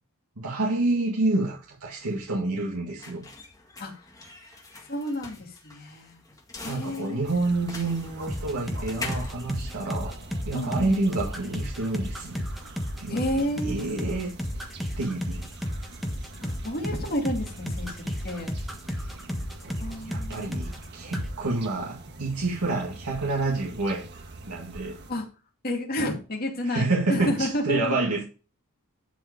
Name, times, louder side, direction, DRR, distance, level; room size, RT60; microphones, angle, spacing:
voice 1, 0.4-3.2 6.6-10.1 10.5-12.5 13.0-13.2 13.6-14.3 15.0-15.5 19.6-19.7 20.1-24.1 24.5-25.0 26.7-28.2, right 2 dB, 85° right, 2.0 m, -28 dB
sound 1, 1.5-10.5, left 3 dB, 15° left, 1.7 m, -43 dB
voice 2, 4.9-6.2 6.6-7.3 10.5-11.1 13.1-14.0 16.4-18.5 19.8-20.5 21.0-21.2 25.1-25.3 25.6-28.0, left 1 dB, 45° left, 2.6 m, -31 dB
sound 2, 7.2-25.1, right 2 dB, 50° right, 1.3 m, -45 dB
sound 3, 8.3-20.9 21.1-21.3, equal, ahead, 1.4 m, -32 dB
11.5 x 4.9 x 4.9 m
head